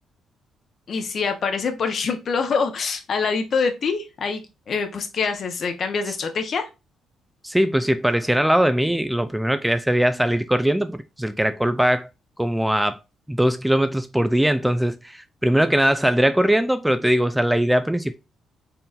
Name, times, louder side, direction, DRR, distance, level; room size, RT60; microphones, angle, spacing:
voice 1, 0.9-6.7, left 5 dB, 55° left, 0.9 m, -25 dB
voice 2, 7.4-12.1 12.4-13.0 13.3-18.2, equal, 5° right, 0.3 m, -20 dB
4.5 x 3.7 x 2.5 m
cardioid pair, 90°, 0 cm